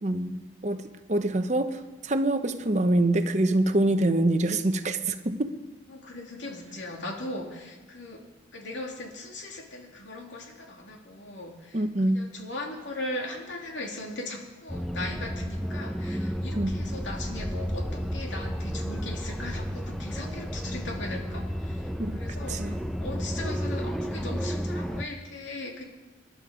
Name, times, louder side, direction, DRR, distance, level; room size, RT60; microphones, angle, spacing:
voice 1, 0.0-5.6 11.7-12.3 16.6-16.8 22.0-22.2 22.5-22.8, right 1 dB, 35° right, 0.8 m, -25 dB
voice 2, 5.9-8.2 8.5-11.8 12.1-25.8, left 2 dB, 70° left, 2.8 m, -38 dB
sound 1, 14.7-25.1, equal, ahead, 0.6 m, -32 dB
24.0 x 11.5 x 5.0 m
head